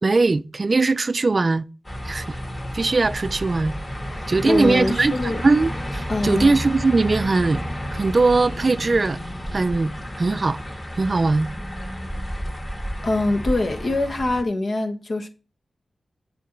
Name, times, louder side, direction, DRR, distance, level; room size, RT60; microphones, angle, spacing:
voice 1, 0.0-1.6 2.0-2.2 2.7-3.8 4.3-5.1 5.4-7.7 7.9-9.2 9.5-9.9 10.2-10.6 11.0-11.5, right 3 dB, 45° right, 0.4 m, -20 dB
sound 1, 1.8-14.4, equal, 25° left, 2.4 m, -31 dB
voice 2, 4.1-5.4 6.1-6.5 13.0-15.3, left 2 dB, 60° left, 1.4 m, -24 dB
8.3 x 4.6 x 5.9 m
cardioid pair, 65°, 0 cm